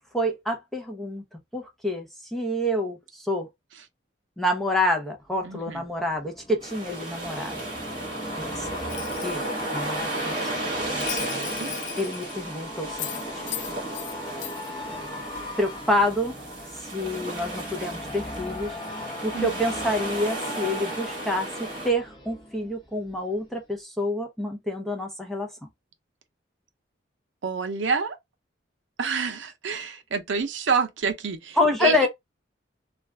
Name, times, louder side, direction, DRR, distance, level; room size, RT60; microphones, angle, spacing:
voice 1, 0.1-1.2 1.5-3.5 4.4-7.6 8.4-8.7 9.2-9.5 9.7-10.3 12.0-13.4 15.6-16.3 16.8-18.8 19.2-21.5 21.8-25.5 31.6-32.1, left 1 dB, ahead, 0.6 m, -27 dB
sound 1, 5.3-23.1 23.5-23.6, left 1 dB, 25° left, 0.9 m, -39 dB
voice 2, 5.4-5.9 11.1-11.7 19.3-19.5 27.4-28.2 29.0-32.1, right 5 dB, 75° right, 0.6 m, -28 dB
sound 2, 6.6-21.9, right 1 dB, 25° right, 1.2 m, -34 dB
Bell, 8.9-9.6 11.0-12.5 13.0-14.1 14.4-14.7, left 12 dB, 75° left, 0.4 m, -36 dB
2.4 x 2.3 x 3.2 m
head